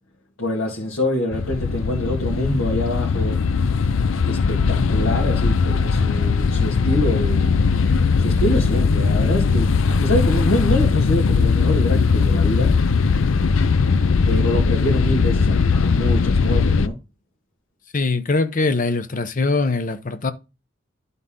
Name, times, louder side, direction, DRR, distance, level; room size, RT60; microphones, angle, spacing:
voice 1, 0.4-3.4 4.3-7.6 8.2-12.7 14.3-17.0, left 1 dB, 85° left, 1.9 m, -25 dB
sound 1, 1.3-16.9, left 5 dB, 70° left, 0.5 m, -19 dB
voice 2, 17.9-20.3, left 3 dB, 40° left, 0.7 m, -22 dB
11.5 x 4.0 x 3.7 m
head